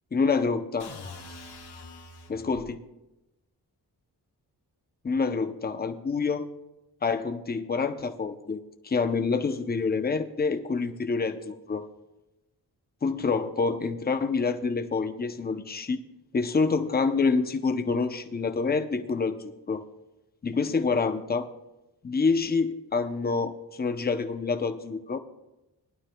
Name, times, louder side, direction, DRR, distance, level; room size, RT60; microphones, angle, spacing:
voice 1, 0.1-0.9 2.3-2.8 5.0-6.5 7.0-11.9 13.0-16.0 16.3-19.8 20.4-21.5 22.0-25.2, left 4 dB, 25° left, 8 dB, 0.6 m, -27 dB
sound 1, 0.8-2.7, left 3 dB, 85° left, 1.7 m, -44 dB
19.5 x 11.5 x 2.2 m, 0.96 s
wide cardioid pair, 170°, 39 cm